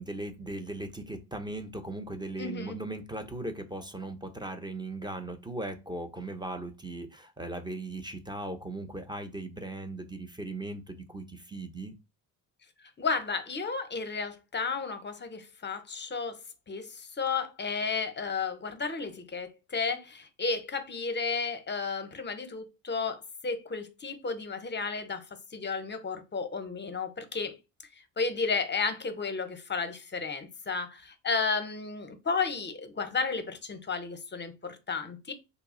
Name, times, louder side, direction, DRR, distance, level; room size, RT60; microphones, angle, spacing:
voice 1, 0.0-11.9, right 2 dB, 10° right, 0.6 m, -38 dB
voice 2, 2.4-2.8 13.0-16.4 16.7-27.5 28.2-35.3, left 4 dB, 25° left, 0.7 m, -33 dB
2.3 x 2.0 x 3.6 m
supercardioid pair, 65°, 44 cm